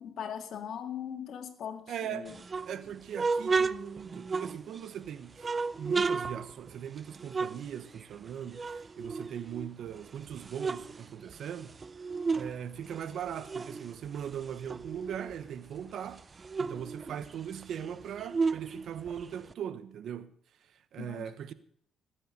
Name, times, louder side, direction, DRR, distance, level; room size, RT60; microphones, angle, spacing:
voice 1, 0.0-2.3 21.0-21.3, left 8 dB, 65° left, 2.1 m, -40 dB
voice 2, 1.9-2.3 2.7-5.5 5.8-11.8 12.3-16.2 16.6-20.3 20.7-21.5, right 9 dB, 70° right, 1.1 m, -39 dB
sound 1, 2.3-4.9 5.4-8.3 8.5-9.9 10.3-12.5 12.8-15.4 15.8-15.9 16.1-19.5, right 4 dB, 35° right, 0.5 m, -33 dB
19.5 x 7.9 x 6.6 m
cardioid pair, 90°, 0 cm